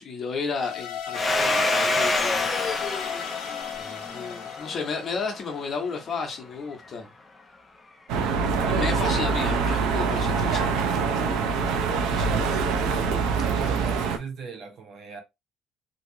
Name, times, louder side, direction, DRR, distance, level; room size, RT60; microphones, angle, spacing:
voice 1, 0.0-2.5 3.8-7.1 8.2-12.4 13.3-13.6, left 4 dB, 35° left, 0.9 m, -34 dB
sound 1, 0.6-5.8, left 9 dB, 70° left, 0.6 m, -34 dB
Domestic sounds home sounds, 1.1-5.5, left 2 dB, 15° left, 0.5 m, -27 dB
sound 2, 8.1-14.2, right 5 dB, 85° right, 0.5 m, -24 dB
voice 2, 13.5-15.2, right 5 dB, 50° right, 0.8 m, -38 dB
3.0 x 2.8 x 2.6 m
cardioid pair, 150°, 0 cm